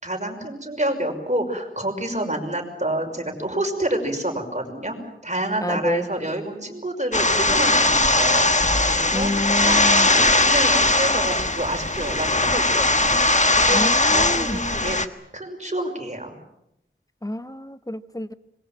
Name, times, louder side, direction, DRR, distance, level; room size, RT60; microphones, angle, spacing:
voice 1, 0.0-13.1 13.5-15.0 15.3-16.3, right 1 dB, 35° right, 3 dB, 5.9 m, -28 dB
voice 2, 5.6-6.1 9.1-10.1 13.7-14.6 17.2-18.3, left 1 dB, 15° left, 11 dB, 1.2 m, -28 dB
sound 1, 7.1-15.1, left 2 dB, 35° left, 1.4 m, -19 dB
26.0 x 22.0 x 7.5 m, 0.82 s
wide cardioid pair, 45°, 21 cm